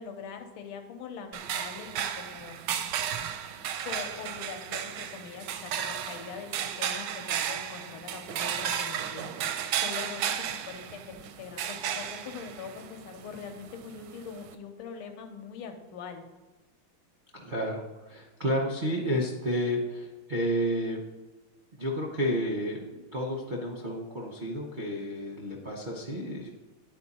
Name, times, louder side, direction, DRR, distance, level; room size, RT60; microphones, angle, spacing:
voice 1, 0.0-2.6 3.8-9.4 9.8-16.2, left 6 dB, 80° left, 5 dB, 1.6 m, -42 dB
sound 1, 1.3-14.5, right 9 dB, 75° right, 1.0 m, -34 dB
voice 2, 17.3-21.0 21.8-26.5, equal, 50° right, -3 dB, 0.5 m, -31 dB
10.5 x 4.5 x 4.2 m, 1.1 s
omnidirectional pair, 2.3 m